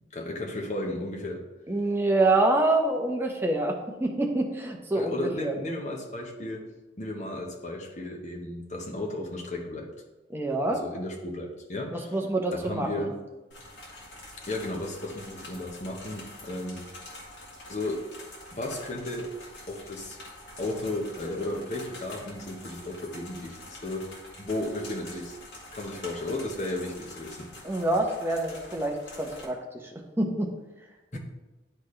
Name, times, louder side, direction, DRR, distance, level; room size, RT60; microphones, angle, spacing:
voice 1, 0.1-1.4 4.9-6.6 7.0-9.9 10.7-12.2 12.6-13.2 14.5-16.9 17.7-18.0 18.5-19.3 19.7-20.2 20.6-25.4 25.7-27.5 31.1-31.2, left 1 dB, 40° left, 0 dB, 1.1 m, -34 dB
voice 2, 1.7-5.5 10.3-10.8 11.9-13.1 27.6-29.6 29.9-30.5, right 2 dB, 15° right, 1 dB, 0.8 m, -26 dB
sound 1, 13.5-29.4, left 1 dB, 75° left, 1.7 m, -46 dB
10.5 x 4.2 x 3.3 m, 1.1 s
head